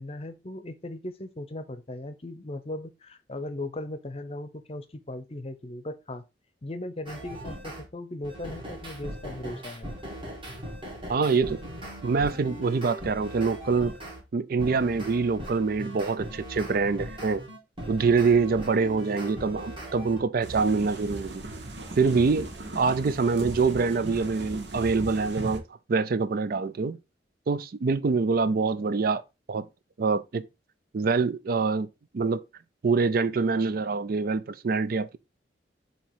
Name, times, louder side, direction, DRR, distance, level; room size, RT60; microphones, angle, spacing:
voice 1, 0.0-6.2 6.6-10.0, left 1 dB, 35° left, 0.7 m, -38 dB
sound 1, 7.1-7.8 8.2-14.2 14.6-20.2, equal, 30° right, 2.2 m, -39 dB
voice 2, 11.1-11.6 12.0-13.9 14.3-17.4 17.9-21.4 22.0-22.5 22.7-25.6 25.9-27.0 27.5-29.2 29.5-29.7 30.0-30.4 30.9-31.9 32.1-32.4 32.8-35.2, right 4 dB, 55° right, 0.4 m, -25 dB
sound 2, 20.4-25.6, right 2 dB, 75° right, 1.2 m, -37 dB
7.2 x 2.9 x 4.6 m
head